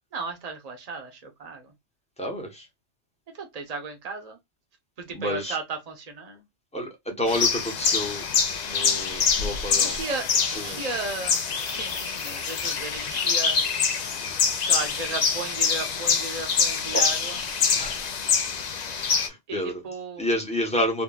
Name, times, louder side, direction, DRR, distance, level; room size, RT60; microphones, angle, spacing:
voice 1, 0.1-1.7 3.4-4.4 5.0-6.4 9.8-11.4 11.7-13.6 14.6-17.4 19.5-20.2, right 4 dB, 40° right, 0.8 m, -35 dB
voice 2, 2.2-2.7 5.1-5.6 6.7-8.2 8.7-10.0 10.4-10.9 16.9-17.0 17.7-18.0 19.1-19.8 20.2-21.0, equal, 5° left, 0.7 m, -29 dB
sound 1, 7.3-19.3, left 6 dB, 55° left, 0.5 m, -25 dB
3.6 x 2.2 x 2.2 m
omnidirectional pair, 1.2 m